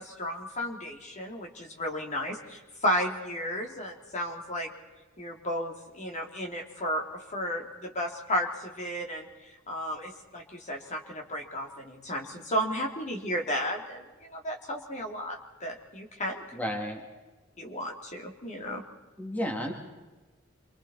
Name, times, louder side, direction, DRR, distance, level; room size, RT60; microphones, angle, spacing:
voice 1, 0.0-4.7 5.2-9.3 9.7-16.4 17.6-18.8, equal, 35° left, 2 dB, 2.6 m, -33 dB
voice 2, 16.5-17.0 19.2-19.7, equal, 10° left, 2 dB, 2.6 m, -32 dB
27.5 x 24.5 x 4.3 m, 1.2 s
head